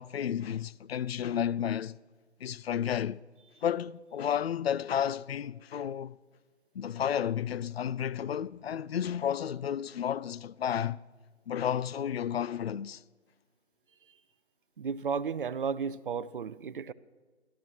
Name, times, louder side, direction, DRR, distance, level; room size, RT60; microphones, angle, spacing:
voice 1, 0.0-2.0 2.4-3.2 3.6-6.2 6.7-11.0 11.5-13.0, left 9 dB, 60° left, 0.5 m, -32 dB
voice 2, 14.8-16.9, right 6 dB, 50° right, 0.7 m, -33 dB
29.5 x 14.0 x 3.0 m
figure-of-eight pair, 145°, 35 cm